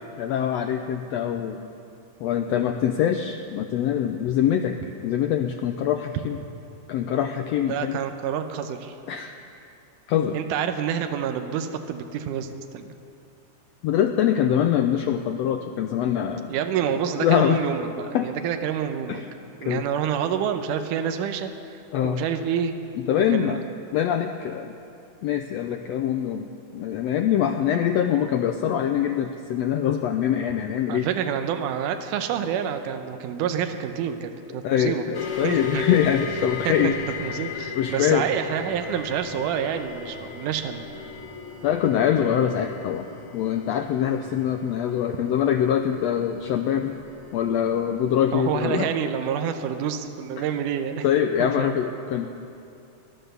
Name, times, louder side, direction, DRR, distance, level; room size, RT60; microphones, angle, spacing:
voice 1, 0.2-1.6 2.2-4.8 5.0-6.4 6.9-8.0 9.1-9.4 10.1-10.4 13.8-16.5 17.2-17.6 18.1-18.3 19.1-19.2 19.6-19.8 21.9-22.2 23.1-23.6 23.9-24.7 25.2-26.5 26.7-31.1 34.6-37.0 37.7-38.3 41.6-43.1 43.3-47.0 47.3-48.9 50.4-50.5 51.0-52.3, left 9 dB, 90° left, 6 dB, 1.4 m, -24 dB
voice 2, 7.7-9.0 10.3-12.9 16.5-19.2 19.6-22.7 23.2-23.6 30.9-35.2 35.4-36.0 36.7-36.9 37.2-41.1 48.3-51.1 51.4-51.7, right 8 dB, 80° right, 7 dB, 2.3 m, -28 dB
sound 1, 35.1-48.6, left 5 dB, 65° left, 2.9 m, -37 dB
18.0 x 11.5 x 6.8 m, 2.6 s
omnidirectional pair, 3.7 m